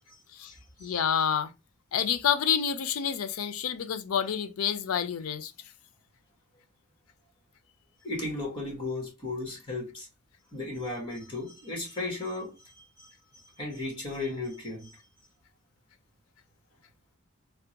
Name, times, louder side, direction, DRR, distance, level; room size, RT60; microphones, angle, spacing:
voice 1, 0.8-1.5 1.9-5.5, left 8 dB, 80° left, 0.4 m, -28 dB
voice 2, 8.0-10.1 10.5-13.1 13.6-15.0, left 2 dB, 25° left, 1.4 m, -35 dB
3.5 x 2.2 x 2.8 m
head